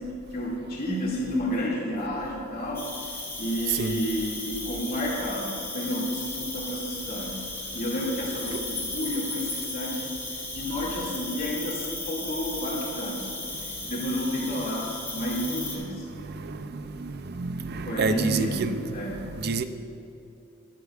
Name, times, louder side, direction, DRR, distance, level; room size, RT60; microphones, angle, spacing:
voice 1, 0.0-3.1 3.4-7.4 7.7-10.1 10.5-13.3 13.6-16.1 17.8-19.3, equal, 45° left, 2.4 m, -31 dB
Cricket, 2.7-15.8, left 2 dB, 15° left, 2.6 m, -35 dB
voice 2, 16.4-18.8 19.4-19.6, right 4 dB, 50° right, 0.5 m, -28 dB
20.5 x 9.5 x 2.5 m
head